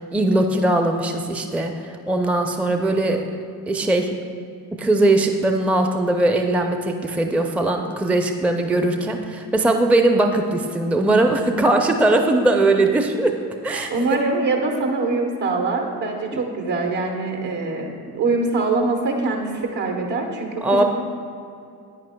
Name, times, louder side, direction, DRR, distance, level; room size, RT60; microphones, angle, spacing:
voice 1, 0.0-1.7 2.1-3.3 3.7-4.1 4.7-13.4 13.6-13.9 16.3-16.4 20.6-20.8, right 2 dB, 5° right, 4 dB, 0.6 m, -20 dB
voice 2, 13.9-20.8, right 3 dB, 65° right, 2 dB, 1.5 m, -23 dB
9.9 x 9.2 x 2.3 m, 2.4 s
hypercardioid pair, 45°, 47 cm